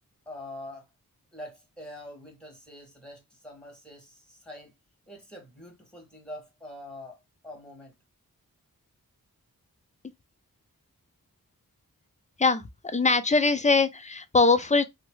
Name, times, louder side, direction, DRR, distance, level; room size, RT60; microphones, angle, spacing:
voice 1, 0.3-0.9 1.3-4.7 5.1-7.9, left 1 dB, ahead, 1.6 m, -44 dB
voice 2, 12.4-14.8, left 4 dB, 20° left, 0.4 m, -22 dB
3.0 x 2.1 x 3.0 m
wide cardioid pair, 60°, 36 cm